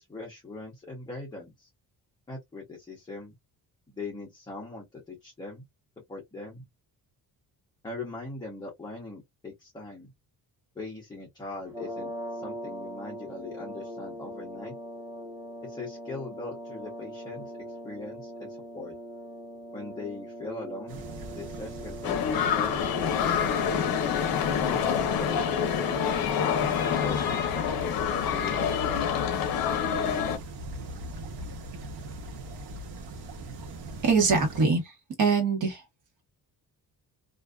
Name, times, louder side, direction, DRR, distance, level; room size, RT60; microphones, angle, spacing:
voice 1, 0.0-1.7 2.3-3.3 3.9-5.6 6.1-6.6 7.8-10.1 10.8-14.7 15.6-18.9 19.7-21.0 21.3-23.9 24.5-25.7 26.4-29.1, left 3 dB, 10° left, 0.7 m, -41 dB
sound 1, 11.6-26.8, equal, 5° right, 1.0 m, -41 dB
sound 2, 20.9-34.6, right 1 dB, 90° right, 0.8 m, -40 dB
sound 3, 22.0-30.4, left 8 dB, 65° left, 0.6 m, -27 dB
voice 2, 34.0-34.9 35.2-35.8, right 4 dB, 50° right, 1.2 m, -23 dB
2.5 x 2.3 x 2.3 m
cardioid pair, 165°, 38 cm